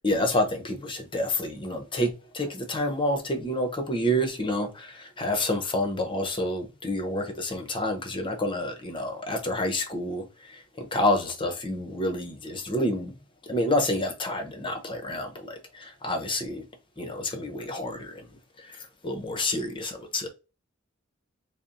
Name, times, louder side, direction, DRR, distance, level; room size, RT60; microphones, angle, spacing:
voice 1, 0.0-13.1 13.5-16.6 17.0-18.3 19.0-20.3, left 1 dB, 25° left, 0.8 m, -28 dB
4.2 x 2.1 x 3.7 m
head